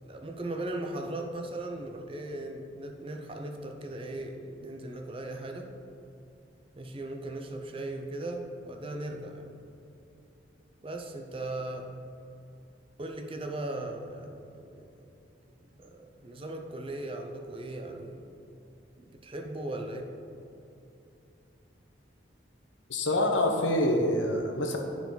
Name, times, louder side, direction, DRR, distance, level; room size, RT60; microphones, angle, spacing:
voice 1, 0.0-5.7 6.7-9.5 10.8-11.9 13.0-15.0 15.8-18.3 19.0-20.1, right 1 dB, 30° right, 3 dB, 0.6 m, -38 dB
voice 2, 22.9-24.8, left 1 dB, 85° left, 2 dB, 1.0 m, -26 dB
10.5 x 4.6 x 4.0 m, 2.8 s
head